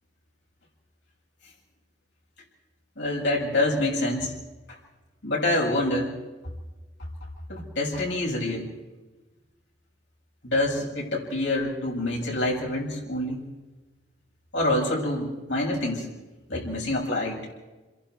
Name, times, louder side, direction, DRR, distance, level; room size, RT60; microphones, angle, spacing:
voice 1, 3.0-4.3 5.2-6.1 7.5-8.7 10.4-13.4 14.5-16.1 16.5-17.4, left 1 dB, 85° left, -2 dB, 7.0 m, -26 dB
28.0 x 22.5 x 4.7 m, 1.2 s
head